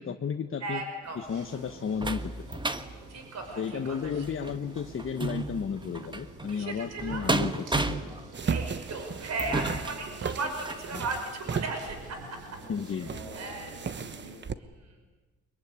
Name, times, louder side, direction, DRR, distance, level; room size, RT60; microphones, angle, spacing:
voice 1, 0.0-0.8 1.1-2.6 3.6-8.0 10.9-11.0 12.7-13.3, left 6 dB, 45° left, 6 dB, 1.3 m, -33 dB
voice 2, 0.6-1.2 3.1-4.3 6.5-7.2 8.4-12.4 13.3-13.9 14.2-14.3 14.6-15.0, right 3 dB, 60° right, 4 dB, 5.5 m, -36 dB
sound 1, 1.1-10.9 11.5-11.6 11.9-12.0, right 2 dB, 15° right, 1.5 m, -34 dB
sound 2, 1.2-14.4, right 2 dB, 90° right, 7.3 m, -48 dB
sound 3, 8.3-14.5, right 6 dB, 35° right, 1.1 m, -36 dB
23.5 x 22.5 x 9.8 m, 1.3 s
cardioid pair, 90°, 30 cm